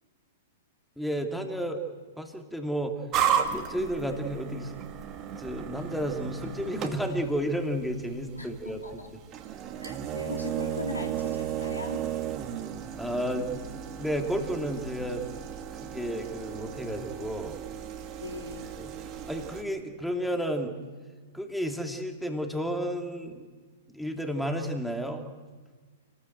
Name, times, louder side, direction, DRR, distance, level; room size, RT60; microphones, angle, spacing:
voice 1, 1.0-1.8 2.2-3.0 3.5-4.7 5.4-9.0 13.0-13.7 14.0-15.3 15.8-17.6 18.8-20.8 21.3-23.5 23.9-25.3, equal, ahead, 3 dB, 2.7 m, -32 dB
sound 1, 3.1-19.6, right 9 dB, 30° right, 2.5 m, -34 dB
voice 2, 8.4-9.1 9.8-12.0 18.2-18.8, left 2 dB, 90° left, 2 dB, 3.5 m, -39 dB
28.0 x 20.5 x 8.0 m, 1.5 s
figure-of-eight pair, 105°, 0 cm